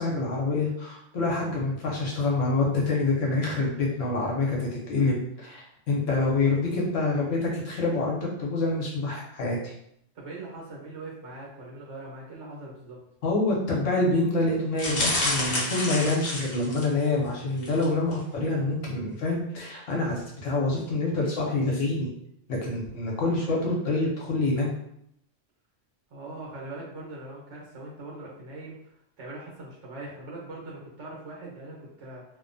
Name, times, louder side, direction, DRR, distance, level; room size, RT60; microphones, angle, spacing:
voice 1, 0.0-9.7 13.2-22.1 22.5-24.7, left 2 dB, 85° left, -3 dB, 1.1 m, -26 dB
voice 2, 10.1-13.0 26.1-32.2, right 2 dB, 70° right, -3 dB, 1.2 m, -41 dB
sound 1, 14.8-17.1 17.6-17.9 18.1-18.2, left 2 dB, 65° left, 1.0 m, -29 dB
2.8 x 2.1 x 2.6 m, 0.74 s
omnidirectional pair, 1.3 m